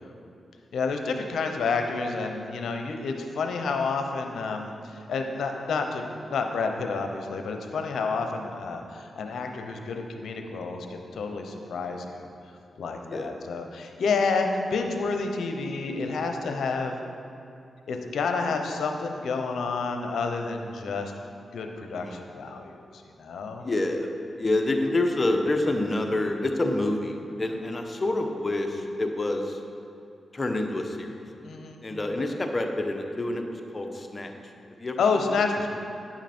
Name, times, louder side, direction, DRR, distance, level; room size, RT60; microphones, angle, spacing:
voice 1, 0.7-12.3 12.8-17.0 17.9-21.1 21.5-22.8 23.2-23.6 31.4-31.8 35.0-35.8, left 4 dB, 80° left, 4 dB, 0.7 m, -29 dB
voice 2, 23.6-24.1 24.4-29.6 30.3-31.2 31.8-34.3 34.8-35.0 35.3-35.4, left 2 dB, 35° left, 4 dB, 0.9 m, -27 dB
9.5 x 5.9 x 4.4 m, 2.7 s
cardioid pair, 65°, 0 cm